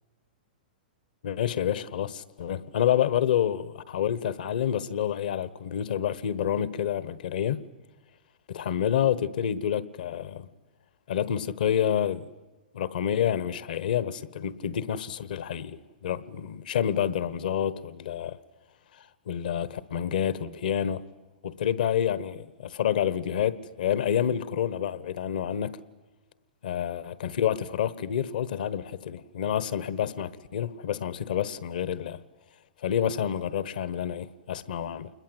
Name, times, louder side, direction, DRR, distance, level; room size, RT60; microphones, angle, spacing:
voice 1, 1.2-7.6 8.5-10.5 11.1-12.2 12.7-18.4 19.3-21.0 21.4-25.8 26.6-32.2 32.8-35.1, left 9 dB, 70° left, 1.3 m, -28 dB
27.5 x 21.0 x 8.0 m
hypercardioid pair, 120°, 5 cm